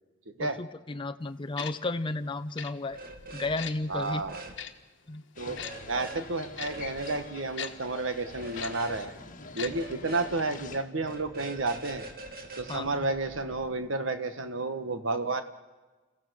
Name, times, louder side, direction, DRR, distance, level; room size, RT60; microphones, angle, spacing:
voice 1, 0.4-3.0 3.3-4.2 5.1-5.2 12.7-13.1, left 2 dB, 25° left, 8 dB, 0.7 m, -33 dB
Tick-tock, 1.6-1.7 2.6-2.7 3.6-3.7 4.6-4.7 5.6-5.7 6.6-6.7 7.6-7.7 8.6-8.7 9.6-9.7 10.0-10.1, left 8 dB, 65° left, 1.4 m, -37 dB
sound 1, 2.9-3.6 3.9-4.6 5.6-6.2 6.6-7.3 8.3-9.0 9.6-10.4 10.9-13.7, right 2 dB, 50° right, 2.4 m, -44 dB
voice 2, 3.9-4.4 5.4-5.6 5.9-9.1 9.5-12.1 12.6-15.4, right 3 dB, 85° right, 9 dB, 1.6 m, -31 dB
sound 2, 5.4-10.8, left 3 dB, 45° left, 1.8 m, -45 dB
30.0 x 15.0 x 6.5 m, 1.2 s
head